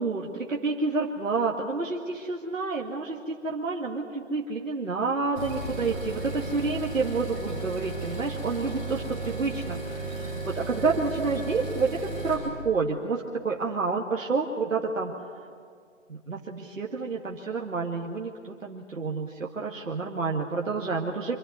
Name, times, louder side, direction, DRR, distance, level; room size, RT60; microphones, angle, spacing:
voice 1, 0.0-15.1 16.1-21.4, right 4 dB, 80° right, -1 dB, 2.0 m, -29 dB
sound 1, 5.4-12.4, right 3 dB, 10° right, 5.3 m, -34 dB
25.0 x 12.5 x 9.2 m, 2.1 s
figure-of-eight pair, 170°, 39 cm